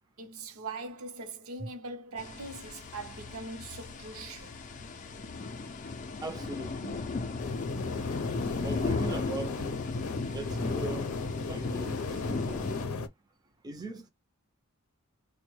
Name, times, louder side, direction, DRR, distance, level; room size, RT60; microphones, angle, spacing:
voice 1, 0.2-4.6, right 3 dB, 75° right, 0.7 m, -41 dB
sound 1, 2.2-12.8, left 3 dB, 35° left, 0.4 m, -36 dB
voice 2, 6.2-7.0 8.6-9.6 10.3-11.1 11.5-12.7 13.6-14.1, right 2 dB, 20° right, 0.5 m, -40 dB
sound 2, 7.4-13.1, left 4 dB, 85° left, 0.6 m, -36 dB
3.7 x 2.1 x 3.1 m
head